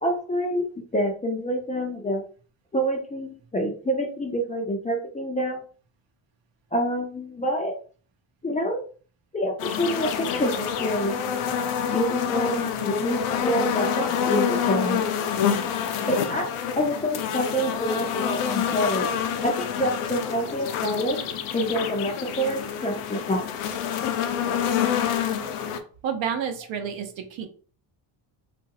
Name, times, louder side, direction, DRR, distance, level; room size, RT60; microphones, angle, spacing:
voice 1, 0.0-0.7 0.9-2.2 2.7-5.6 6.7-7.7 8.4-8.8 9.3-11.2 11.8-15.0 16.1-16.5 16.7-19.2 19.4-21.2 21.5-23.4, equal, 15° left, 0 dB, 0.4 m, -27 dB
sound 1, 9.6-25.8, left 8 dB, 80° left, 0.6 m, -27 dB
voice 2, 26.0-27.5, right 7 dB, 65° right, 6 dB, 0.8 m, -29 dB
3.0 x 2.5 x 2.8 m, 0.41 s
cardioid pair, 130°, 49 cm